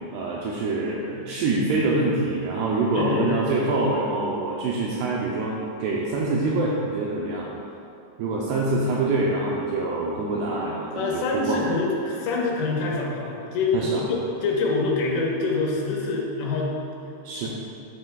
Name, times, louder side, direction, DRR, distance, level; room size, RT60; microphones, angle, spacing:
voice 1, 0.0-7.5 8.2-11.6 13.7-14.0 17.2-17.5, right 2 dB, 85° right, -4 dB, 2.4 m, -25 dB
voice 2, 2.9-3.4 10.9-16.7 17.4-17.5, left 3 dB, 75° left, -3 dB, 3.1 m, -25 dB
11.0 x 7.7 x 2.3 m, 2.7 s
omnidirectional pair, 5.5 m